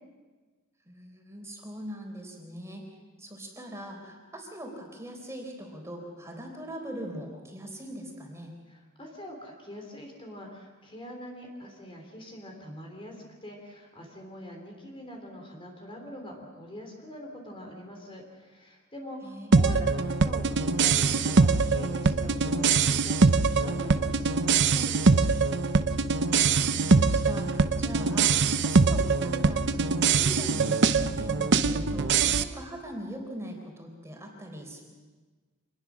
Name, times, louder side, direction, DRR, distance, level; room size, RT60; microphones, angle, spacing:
voice 1, 0.9-2.8 3.2-8.5 19.2-19.7 26.4-34.8, equal, 15° right, 1 dB, 4.0 m, -41 dB
voice 2, 8.7-19.8 20.2-25.3, equal, 25° left, 1 dB, 3.3 m, -44 dB
sound 1, 19.5-32.4, right 4 dB, 55° right, 0.8 m, -23 dB
26.0 x 20.0 x 6.2 m, 1.3 s
head